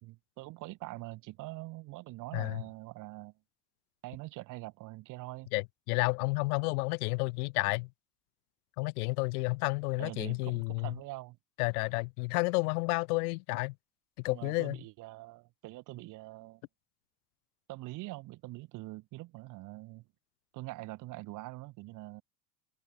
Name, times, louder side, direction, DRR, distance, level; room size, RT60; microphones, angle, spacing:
voice 1, 0.0-3.3 4.0-5.5 10.0-11.4 14.3-16.6 17.7-20.0 20.5-22.2, right 20 dB, 45° right, 3.8 m, -44 dB
voice 2, 5.5-7.9 8.8-10.9 11.6-13.7 14.2-14.8, left 26 dB, 80° left, 1.4 m, -31 dB
cardioid pair, 170°, 44 cm